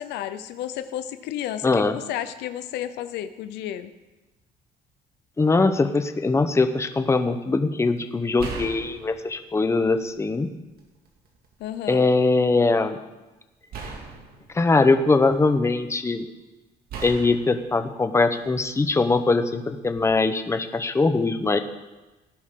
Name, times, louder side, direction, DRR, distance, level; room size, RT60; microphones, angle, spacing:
voice 1, 0.0-3.9 11.6-12.1, left 11 dB, 85° left, 12 dB, 0.7 m, -32 dB
voice 2, 1.6-2.0 5.4-10.5 11.9-13.0 14.5-16.2 17.0-21.6, left 3 dB, 15° left, 8 dB, 0.9 m, -21 dB
sound 1, 8.4-10.2 10.7-11.6 13.7-15.7 16.9-18.8 19.8-20.1, right 4 dB, 65° right, 2.2 m, -40 dB
17.5 x 10.5 x 3.8 m, 1.1 s
cardioid pair, 110°, 17 cm